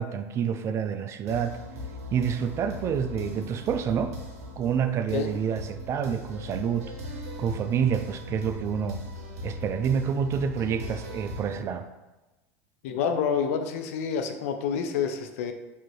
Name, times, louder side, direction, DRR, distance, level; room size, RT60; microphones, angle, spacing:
voice 1, 0.0-1.6 2.1-4.2 4.6-6.9 7.4-9.1 9.4-11.9, right 7 dB, 35° right, 9 dB, 0.3 m, -28 dB
sound 1, 1.3-11.6, left 2 dB, 80° right, 0.9 m, -39 dB
voice 2, 12.8-15.5, left 7 dB, 70° left, 6 dB, 0.5 m, -28 dB
4.7 x 2.8 x 3.1 m, 1.1 s
hypercardioid pair, 95°, 8 cm